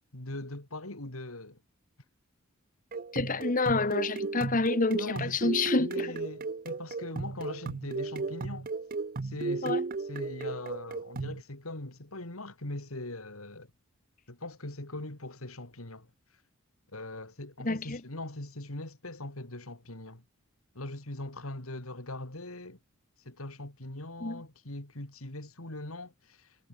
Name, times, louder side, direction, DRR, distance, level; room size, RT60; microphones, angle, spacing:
voice 1, 0.1-1.6 4.9-8.7 9.2-9.8 10.1-13.7 14.3-16.1 16.9-20.2 20.8-22.8 23.3-26.7, left 2 dB, 90° left, 3.5 m, -41 dB
sound 1, 2.9-11.4, right 3 dB, 40° right, 0.6 m, -35 dB
voice 2, 3.1-6.2 9.6-9.8 17.6-18.0 24.2-24.4, left 3 dB, 40° left, 1.3 m, -28 dB
head